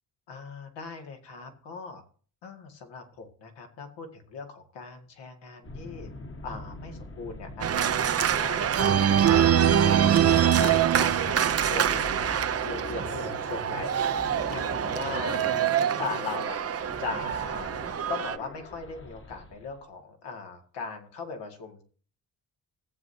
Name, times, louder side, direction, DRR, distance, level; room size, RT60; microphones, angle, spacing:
voice 1, 0.3-2.0 2.4-6.1 6.4-7.8 8.2-11.4 11.7-12.3 12.6-14.0 14.5-15.4 16.0-16.6 17.0-17.7 18.1-21.8, left 4 dB, 75° left, 3 dB, 2.3 m, -39 dB
sound 1, 5.6-19.8, left 2 dB, 30° left, 1.5 m, -42 dB
Organ, 7.6-18.4, right 9 dB, 35° right, 0.7 m, -24 dB
17.0 x 8.0 x 2.8 m, 0.43 s
supercardioid pair, 65°, 42 cm